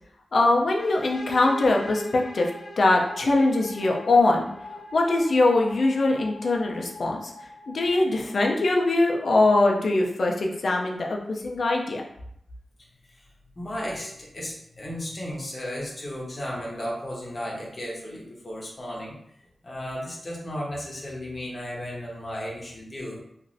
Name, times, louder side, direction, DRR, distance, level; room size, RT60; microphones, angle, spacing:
voice 1, 0.3-2.5 2.8-4.5 4.9-7.3 7.7-12.0, left 2 dB, 55° left, 0 dB, 0.5 m, -22 dB
sound 1, 0.8-8.4, left 1 dB, 80° left, 0.9 m, -41 dB
voice 2, 13.6-19.1 19.6-23.2, equal, 30° left, -4 dB, 0.8 m, -34 dB
3.0 x 2.5 x 2.6 m, 0.73 s
wide cardioid pair, 165°, 0 cm